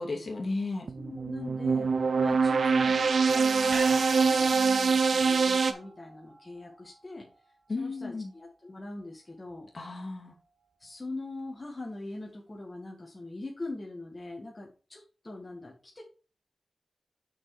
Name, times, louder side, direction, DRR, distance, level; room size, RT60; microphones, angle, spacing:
voice 1, 0.0-0.9 7.7-8.3 9.7-10.3, left 3 dB, 50° left, 0 dB, 2.5 m, -34 dB
sound 1, 0.9-5.7, right 5 dB, 75° right, 0.7 m, -24 dB
voice 2, 1.0-1.9 2.2-7.3 7.8-9.7 10.8-16.0, left 2 dB, 25° left, -2 dB, 1.9 m, -42 dB
sound 2, 3.7-8.1 8.4-8.5, right 2 dB, 55° right, 2.0 m, -43 dB
6.3 x 6.1 x 4.9 m, 0.36 s
wide cardioid pair, 85°, 0 cm